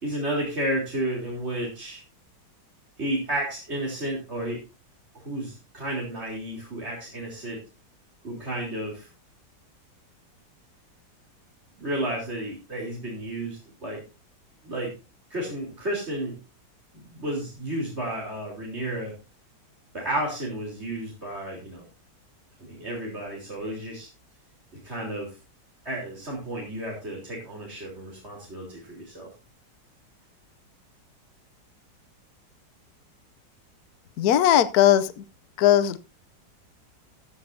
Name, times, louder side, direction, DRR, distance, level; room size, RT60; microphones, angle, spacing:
voice 1, 0.0-2.0 3.0-4.6 5.1-7.6 8.2-9.1 11.8-14.0 14.6-14.9 15.3-16.4 16.9-19.1 19.9-21.8 22.6-24.1 24.8-25.4 25.8-29.3, right 1 dB, 35° right, -2 dB, 4.0 m, -32 dB
voice 2, 34.2-35.1 35.6-36.0, left 11 dB, 65° left, 13 dB, 1.1 m, -18 dB
15.0 x 13.0 x 2.7 m, 0.29 s
omnidirectional pair, 1.9 m